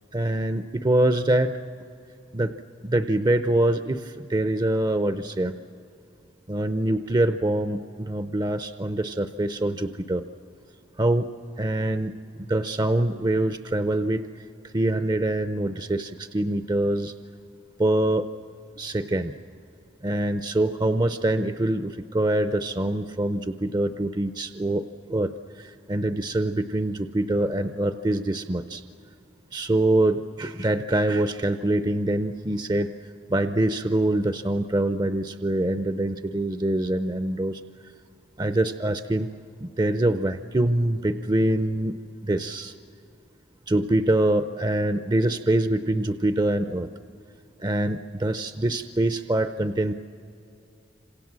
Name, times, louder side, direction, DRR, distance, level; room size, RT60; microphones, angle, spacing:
voice 1, 0.1-1.6 2.3-2.5 2.8-5.5 6.5-10.2 11.0-11.3 11.6-12.1 12.4-14.2 14.7-17.1 17.8-18.3 18.8-19.3 20.0-24.8 25.1-25.3 25.6-28.8 29.5-32.9 33.3-37.6 38.4-39.3 39.6-42.0 42.2-42.7 43.7-46.9 47.6-49.9, right 1 dB, 25° right, 10 dB, 0.6 m, -24 dB
27.0 x 27.0 x 7.5 m, 2.6 s
head